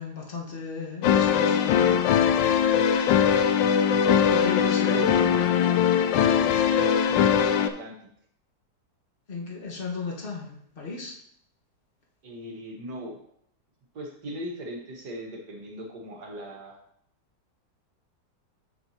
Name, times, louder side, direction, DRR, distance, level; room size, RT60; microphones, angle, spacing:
voice 1, 0.0-1.9 4.3-5.1 9.3-11.1, left 5 dB, 35° left, -1 dB, 1.4 m, -35 dB
sound 1, 1.0-7.7, left 8 dB, 80° left, 1.2 m, -21 dB
voice 2, 3.0-3.4 4.8-5.2 6.1-7.9 12.2-13.2 13.9-16.8, equal, 65° right, 1 dB, 1.9 m, -39 dB
7.9 x 6.8 x 2.9 m, 0.68 s
omnidirectional pair, 1.9 m